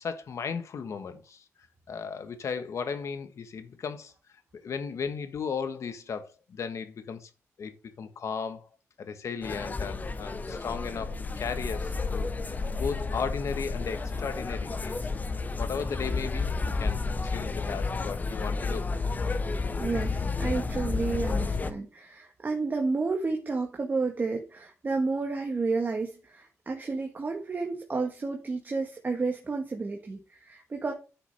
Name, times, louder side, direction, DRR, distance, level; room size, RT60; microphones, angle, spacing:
voice 1, 0.0-1.4 1.9-4.1 4.6-7.3 7.6-8.7 9.0-15.0 15.6-18.9, left 6 dB, 60° left, 1.3 m, -36 dB
sound 1, 9.4-21.7, left 4 dB, 30° left, 0.8 m, -31 dB
voice 2, 19.8-30.9, right 3 dB, 35° right, 1.4 m, -31 dB
10.0 x 5.8 x 3.5 m
cardioid pair, 95°, 6 cm